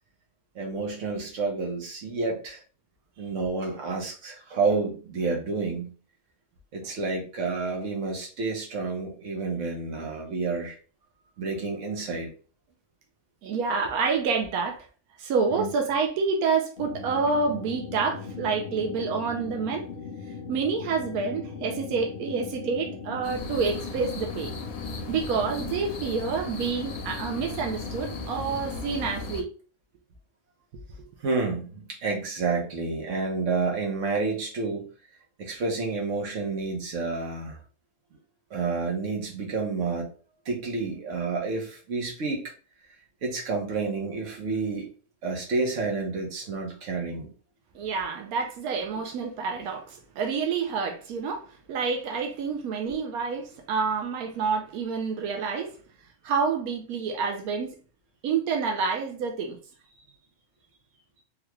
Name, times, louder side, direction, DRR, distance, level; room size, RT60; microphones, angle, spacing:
voice 1, 0.5-2.6 3.2-5.9 6.7-10.8 11.4-12.3 15.5-15.7 31.2-34.9 35.4-37.6 38.5-40.1 40.4-42.4 43.2-44.9 45.2-47.3, right 4 dB, 60° right, 1.2 m, -29 dB
voice 2, 13.4-14.8 15.2-19.9 20.5-24.5 25.1-29.5 47.7-55.8 56.2-57.7 58.2-59.6, right 5 dB, 90° right, 1.1 m, -28 dB
sound 1, 16.8-29.3, left 5 dB, 60° left, 0.6 m, -39 dB
sound 2, 23.2-29.4, left 2 dB, 85° left, 1.1 m, -38 dB
3.6 x 2.3 x 2.9 m
omnidirectional pair, 1.5 m